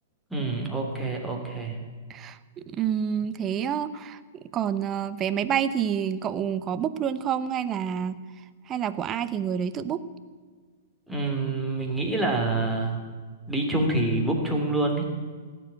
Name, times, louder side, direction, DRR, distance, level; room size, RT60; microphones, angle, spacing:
voice 1, 0.3-1.8 11.1-13.0 13.5-15.1, right 2 dB, ahead, -1 dB, 3.2 m, -26 dB
voice 2, 2.1-4.2 4.5-8.2 8.7-10.0, right 8 dB, 25° right, 13 dB, 0.8 m, -28 dB
17.0 x 7.7 x 9.0 m, 1.5 s
figure-of-eight pair, 105°, 0 cm